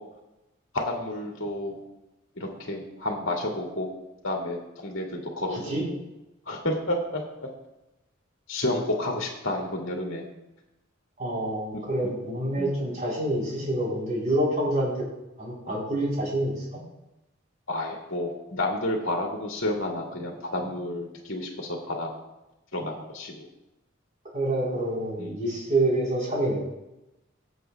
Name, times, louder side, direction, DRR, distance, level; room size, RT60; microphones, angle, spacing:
voice 1, 0.7-1.8 2.4-3.9 4.2-5.7 6.5-7.2 8.5-10.3 11.7-11.8 12.6-12.8 17.7-22.1 22.7-23.5 25.2-25.4, left 1 dB, 70° left, 0 dB, 2.0 m, -30 dB
voice 2, 5.5-5.8 11.2-14.9 15.4-16.8 24.3-26.6, right 1 dB, 40° right, -5 dB, 3.9 m, -27 dB
17.5 x 7.9 x 2.3 m, 0.93 s
head